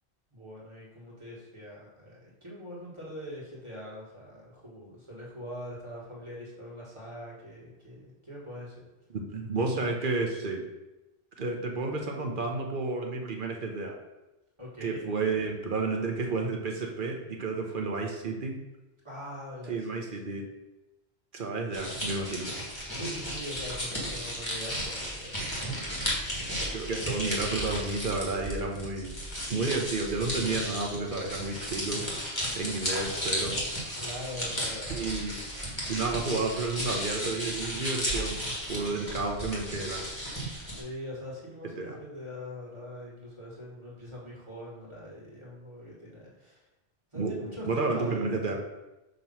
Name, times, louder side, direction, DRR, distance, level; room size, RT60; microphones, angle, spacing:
voice 1, 0.3-8.8 14.6-15.0 19.0-20.3 22.9-27.1 34.0-35.3 40.7-46.6 47.1-48.6, equal, 30° right, -6 dB, 1.9 m, -43 dB
voice 2, 9.1-10.7 11.4-14.0 14.8-18.6 19.7-20.5 21.3-22.5 26.7-29.1 29.5-32.0 32.5-33.6 34.9-35.4 35.9-38.4 38.7-40.0 41.8-42.0 47.1-47.3 47.6-48.6, right 3 dB, 55° right, 2 dB, 1.0 m, -31 dB
sound 1, 21.7-40.8, equal, 25° left, 1.7 m, -34 dB
6.4 x 3.0 x 5.4 m, 1.0 s
omnidirectional pair, 1.1 m